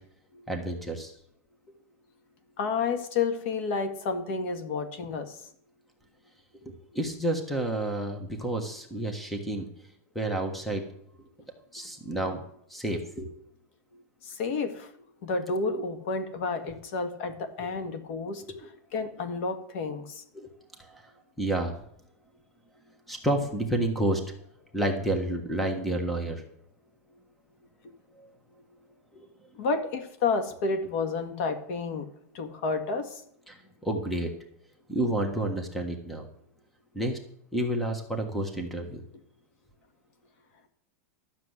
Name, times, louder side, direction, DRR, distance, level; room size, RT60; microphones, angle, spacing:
voice 1, 0.5-1.1 6.6-9.7 10.1-10.8 11.7-12.4 12.7-13.3 18.4-18.7 20.3-20.5 20.8-21.1 21.4-21.7 23.1-24.2 24.7-26.4 28.2-28.3 29.1-29.3 33.5-34.3 34.9-36.3 36.9-37.2 37.5-39.0, right 1 dB, ahead, 4 dB, 1.3 m, -30 dB
voice 2, 2.6-5.4 14.2-14.9 15.2-18.4 18.9-20.2 29.6-32.1 32.3-33.2, left 4 dB, 50° left, 8 dB, 1.8 m, -30 dB
12.5 x 6.9 x 8.0 m, 0.69 s
supercardioid pair, 155°, 9 cm